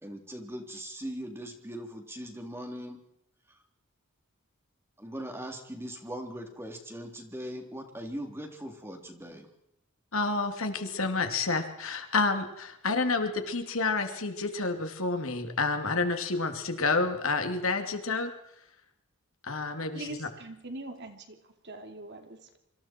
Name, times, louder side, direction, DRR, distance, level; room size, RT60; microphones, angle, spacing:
voice 1, 0.0-3.0 3.5-3.6 5.0-9.5, equal, 10° right, 3 dB, 3.3 m, -40 dB
voice 2, 10.1-18.3 19.4-20.3, left 3 dB, 65° left, 6 dB, 2.7 m, -29 dB
voice 3, 19.9-22.6, right 2 dB, 50° right, 5 dB, 2.9 m, -43 dB
26.5 x 25.0 x 4.5 m, 0.82 s
head